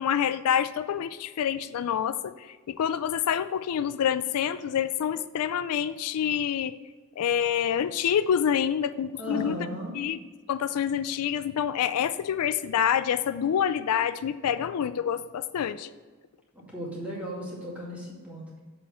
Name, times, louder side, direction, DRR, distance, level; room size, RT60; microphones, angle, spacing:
voice 1, 0.0-6.7 7.2-9.6 9.9-10.2 10.5-15.9, left 9 dB, 85° left, 13 dB, 0.4 m, -27 dB
voice 2, 9.2-9.9 16.5-18.4, equal, 5° right, -5 dB, 2.3 m, -35 dB
7.2 x 4.5 x 6.9 m, 1.4 s
head